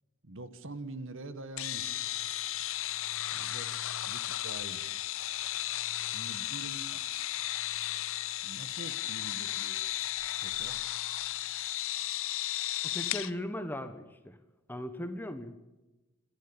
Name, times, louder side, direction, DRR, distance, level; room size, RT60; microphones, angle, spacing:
voice 1, 0.2-2.1 3.3-3.7 4.0-4.9 6.1-7.1 8.4-9.8 10.4-10.8, right 2 dB, 65° right, 12 dB, 1.7 m, -45 dB
sound 1, 1.6-13.3, left 14 dB, 65° left, 0.8 m, -34 dB
voice 2, 12.8-14.4 14.7-15.6, left 1 dB, 10° left, 9 dB, 1.2 m, -38 dB
26.5 x 11.5 x 8.9 m, 1.1 s
head